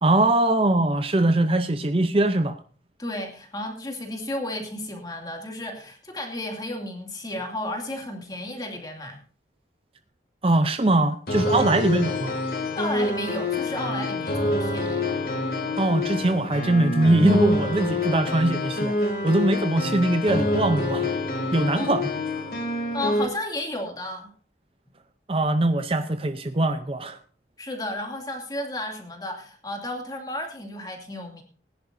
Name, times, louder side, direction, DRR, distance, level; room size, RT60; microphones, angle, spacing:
voice 1, 0.0-2.6 10.4-12.4 15.8-21.1 21.5-22.1 25.3-27.2, right 2 dB, 30° right, 9 dB, 0.6 m, -22 dB
voice 2, 3.0-9.2 11.5-11.7 12.7-15.1 21.7-21.9 22.7-24.3 27.6-31.4, left 1 dB, 20° left, 2 dB, 2.5 m, -33 dB
sound 1, 11.3-23.2, left 2 dB, 55° left, 2.6 m, -27 dB
21.0 x 10.5 x 2.7 m, 0.40 s
head